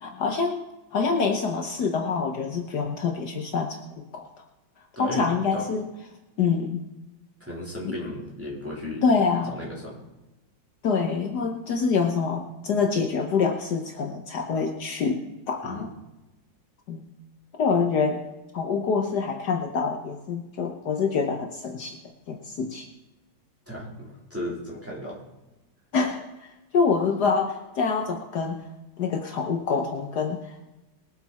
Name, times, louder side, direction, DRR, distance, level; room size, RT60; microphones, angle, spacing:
voice 1, 0.0-3.8 4.1-4.3 5.0-5.9 6.4-6.9 7.8-7.9 9.0-9.5 10.8-15.9 16.9-17.0 17.6-18.2 18.5-22.0 22.3-22.9 25.9-26.2 26.7-28.7 29.0-30.4, left 5 dB, 65° left, 3 dB, 1.5 m, -26 dB
voice 2, 5.0-5.7 7.4-9.0 9.5-10.0 15.6-15.9 23.7-25.2, left 1 dB, 5° right, -6 dB, 3.7 m, -35 dB
21.0 x 8.5 x 4.2 m, 1.0 s
omnidirectional pair, 2.0 m